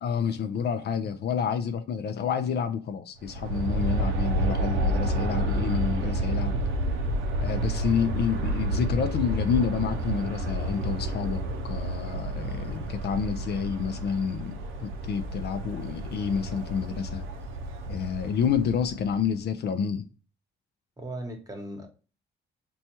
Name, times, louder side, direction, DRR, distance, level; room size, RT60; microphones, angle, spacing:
voice 1, 0.0-6.6 7.4-17.3 17.9-20.1, left 7 dB, 55° left, 0.4 m, -29 dB
Aircraft, 3.2-19.3, right 1 dB, 90° right, 0.5 m, -30 dB
voice 2, 21.0-21.9, right 1 dB, 20° right, 1.0 m, -38 dB
4.1 x 2.3 x 2.8 m
cardioid pair, 90°, 20 cm